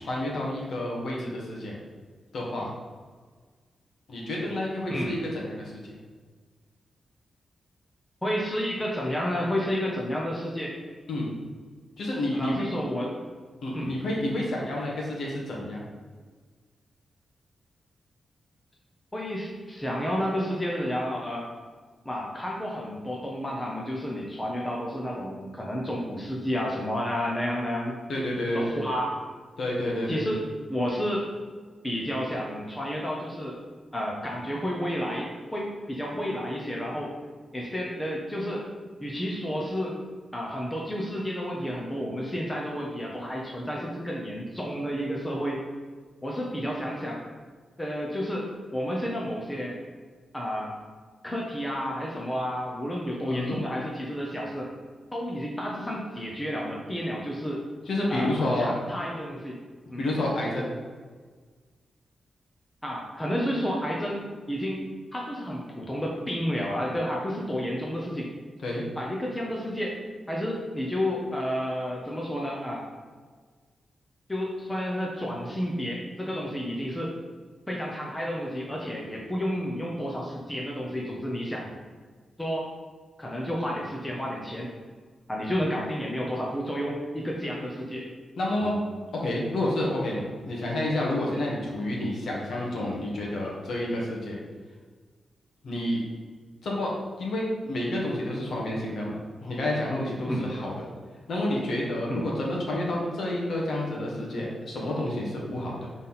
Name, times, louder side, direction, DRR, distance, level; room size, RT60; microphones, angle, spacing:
voice 1, 0.0-1.8 2.3-2.7 4.1-5.2 5.4-5.9 11.1-11.3 12.0-12.7 13.6-15.8 28.1-28.8 29.6-30.2 53.3-53.6 57.9-58.7 60.0-60.7 68.6-68.8 88.4-88.8 89.1-94.4 95.6-96.0 96.6-96.9 97.2-99.1 99.4-100.9 101.3-105.9, left 1 dB, 60° left, -3 dB, 1.8 m, -29 dB
voice 2, 8.2-10.8 12.3-13.2 13.7-13.9 19.1-21.5 22.0-28.0 28.5-29.2 30.1-31.3 31.8-33.6 33.9-37.1 37.5-38.7 39.0-40.0 40.3-45.6 46.2-47.2 47.8-49.8 50.3-50.7 51.2-54.7 55.1-57.6 58.1-59.6 59.9-60.0 62.8-64.2 64.5-64.8 65.1-68.3 69.0-70.0 70.3-72.9 74.3-77.1 77.7-81.7 82.4-82.7 83.2-84.7 85.3-88.1 88.6-88.7 100.3-100.5 102.1-102.2, equal, 10° left, -2 dB, 0.9 m, -31 dB
5.9 x 4.1 x 5.8 m, 1.5 s
wide cardioid pair, 165°, 0 cm